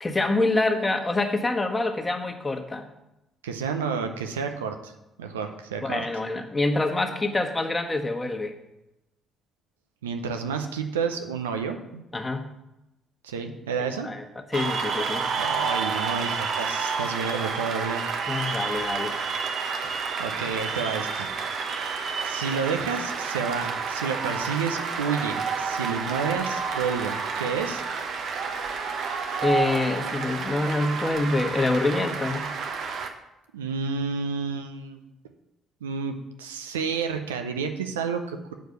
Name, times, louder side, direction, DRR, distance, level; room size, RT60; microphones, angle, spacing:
voice 1, 0.0-2.8 5.8-8.6 12.1-12.5 14.0-14.2 14.5-15.2 18.3-19.1 29.4-32.5, left 2 dB, 25° left, 4 dB, 1.2 m, -26 dB
voice 2, 3.4-4.9 5.2-6.0 10.0-12.0 13.2-14.1 15.4-18.0 20.2-21.3 22.2-27.8 33.5-35.0 35.8-38.6, right 5 dB, 90° right, 6 dB, 0.6 m, -30 dB
Cheering / Applause, 14.5-33.1, right 5 dB, 60° right, 0.9 m, -30 dB
7.9 x 4.8 x 6.7 m, 0.94 s
hypercardioid pair, 50°, 0 cm